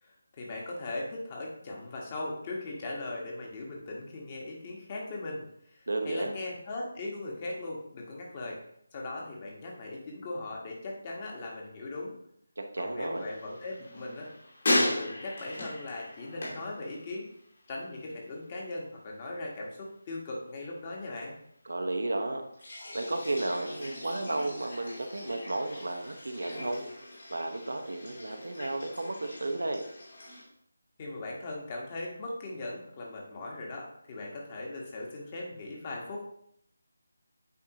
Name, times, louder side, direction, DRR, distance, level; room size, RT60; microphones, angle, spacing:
voice 1, 0.0-8.6 8.9-12.2 12.8-14.3 14.6-17.3 17.7-21.3 31.0-36.2, left 2 dB, 30° left, -1 dB, 1.5 m, -39 dB
voice 2, 5.9-6.3 12.6-13.3 21.6-22.4 22.9-26.9 27.3-29.8, right 2 dB, 65° right, 4 dB, 0.9 m, -33 dB
sound 1, 13.1-17.6 17.8-18.4 22.5-30.4, left 1 dB, 50° left, 2.7 m, -37 dB
8.3 x 4.6 x 3.0 m, 0.71 s
figure-of-eight pair, 155°, 0 cm